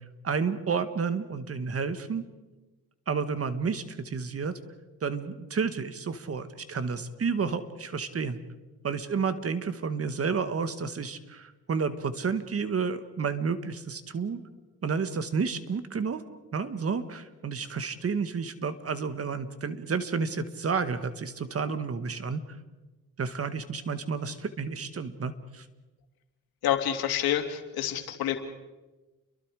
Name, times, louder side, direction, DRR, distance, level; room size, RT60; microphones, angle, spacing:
voice 1, 0.2-2.2 3.1-4.6 5.0-8.4 8.8-14.4 14.8-16.2 16.5-22.4 23.2-25.7, right 5 dB, 40° right, 11 dB, 1.8 m, -31 dB
voice 2, 26.6-28.4, left 11 dB, 75° left, 6 dB, 2.8 m, -28 dB
30.0 x 23.0 x 5.0 m, 1.2 s
cardioid pair, 90°, 36 cm